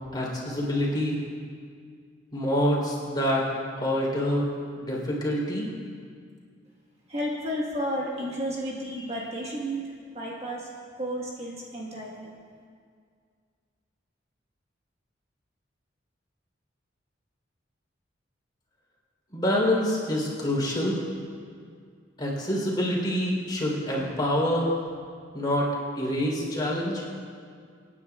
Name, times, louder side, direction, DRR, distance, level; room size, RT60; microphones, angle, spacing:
voice 1, 0.1-1.2 2.3-3.4 3.8-4.5 4.8-5.7 19.3-21.0 22.2-24.7 25.3-25.7 26.0-27.0, equal, 25° left, -3 dB, 3.6 m, -26 dB
voice 2, 7.1-10.7 11.0-12.3, equal, 30° right, -4 dB, 1.5 m, -32 dB
27.0 x 10.0 x 2.4 m, 2.1 s
head